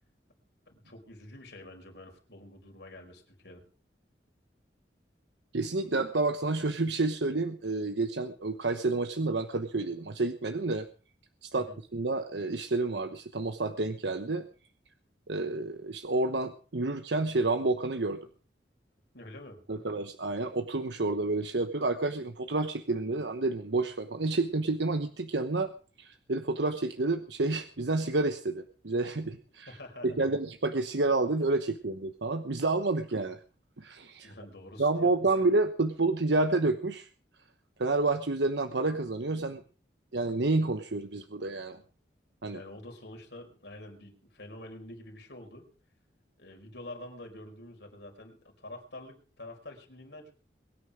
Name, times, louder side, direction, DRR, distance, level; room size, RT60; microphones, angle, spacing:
voice 1, 0.7-3.6 11.5-11.8 19.1-19.8 29.7-30.3 34.2-35.1 42.5-45.7 46.4-50.3, left 1 dB, 75° left, 2 dB, 5.1 m, -47 dB
voice 2, 5.5-10.9 11.4-14.4 15.3-18.2 19.7-25.7 26.0-29.8 30.0-33.4 33.8-34.3 34.8-37.1 37.8-39.6 40.1-41.8 42.4-42.6, right 2 dB, 80° right, 8 dB, 1.1 m, -29 dB
23.0 x 9.7 x 5.1 m, 0.39 s
head